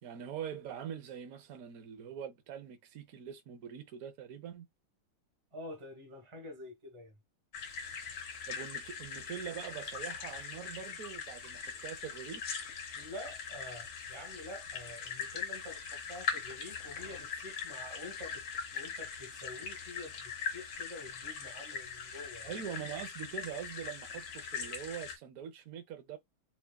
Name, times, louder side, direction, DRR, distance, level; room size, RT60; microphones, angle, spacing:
voice 1, 0.0-4.7 8.5-12.4 22.4-26.2, right 9 dB, 55° right, 1.0 m, -43 dB
voice 2, 5.5-7.1 12.9-18.4 18.7-22.5, left 1 dB, 20° right, 1.0 m, -47 dB
sound 1, 7.5-25.2, left 6 dB, 85° left, 2.1 m, -41 dB
5.8 x 2.5 x 2.3 m
omnidirectional pair, 2.4 m